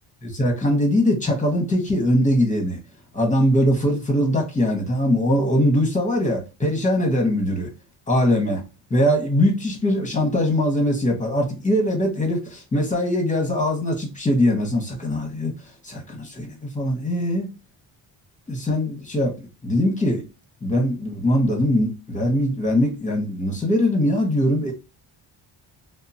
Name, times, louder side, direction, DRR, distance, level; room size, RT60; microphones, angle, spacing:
voice 1, 0.4-2.8 3.1-7.7 8.1-8.6 8.9-15.5 15.8-17.5 18.5-20.2 20.6-24.7, left 1 dB, 15° left, 1.1 m, -21 dB
2.8 x 2.1 x 2.6 m
cardioid pair, 90°, 50 cm